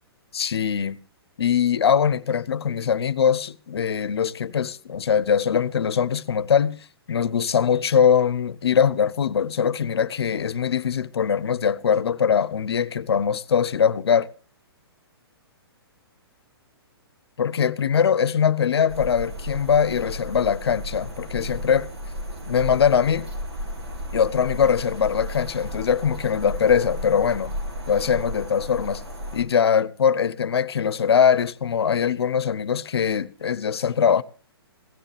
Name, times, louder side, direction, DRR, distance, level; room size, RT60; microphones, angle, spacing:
voice 1, 0.3-1.0 1.4-14.3 17.4-21.9 22.5-23.3 24.1-27.5 27.9-29.0 29.3-34.2, left 7 dB, 75° left, 0.8 m, -22 dB
sound 1, 18.9-29.4, equal, 85° right, 4.1 m, -34 dB
16.5 x 13.5 x 3.4 m
hypercardioid pair, 130°, 13 cm